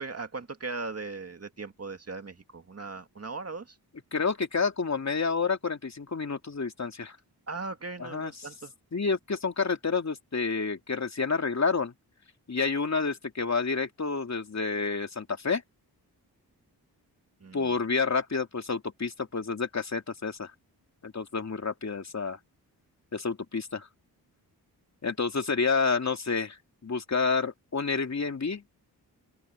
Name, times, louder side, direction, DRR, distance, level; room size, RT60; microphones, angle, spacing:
voice 1, 0.0-3.8 7.5-8.7 17.4-17.8, right 3 dB, 35° right, 2.1 m, -38 dB
voice 2, 4.1-7.2 8.0-8.3 8.9-11.9 12.5-15.6 17.5-20.5 21.0-22.4 23.1-23.9 25.0-26.6 26.8-28.6, left 4 dB, 40° left, 2.8 m, -29 dB
open air
cardioid pair, 60°, 40 cm